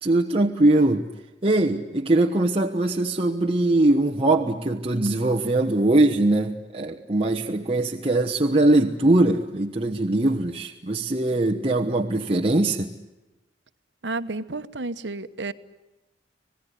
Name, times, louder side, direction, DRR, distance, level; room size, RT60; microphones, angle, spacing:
voice 1, 0.0-1.0 1.4-12.9, right 2 dB, 35° right, 2 dB, 1.2 m, -21 dB
voice 2, 14.0-15.5, right 3 dB, 75° right, 12 dB, 1.2 m, -31 dB
27.0 x 19.0 x 10.0 m, 1.0 s
head